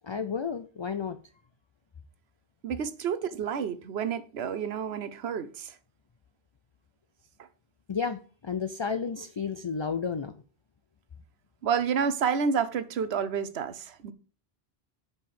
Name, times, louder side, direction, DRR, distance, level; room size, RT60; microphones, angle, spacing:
voice 1, 0.0-1.2 7.9-10.4, left 6 dB, 40° left, 0.4 m, -32 dB
voice 2, 2.6-5.7 11.6-14.1, right 6 dB, 80° right, 1.0 m, -29 dB
5.8 x 5.3 x 6.5 m
omnidirectional pair, 1.1 m